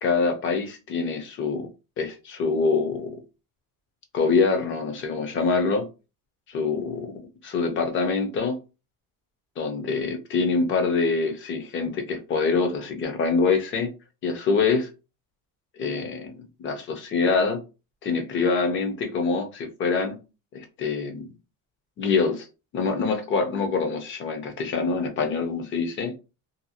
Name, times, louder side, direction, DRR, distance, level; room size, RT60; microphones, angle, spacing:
voice 1, 0.0-1.7 2.0-3.1 4.1-5.9 6.5-7.1 7.4-8.6 9.6-13.9 14.2-14.9 15.8-17.6 18.0-20.2 20.5-21.3 22.0-22.5 22.7-26.1, left 4 dB, 35° left, 0.5 m, -25 dB
2.6 x 2.3 x 2.7 m
cardioid pair, 160°, 36 cm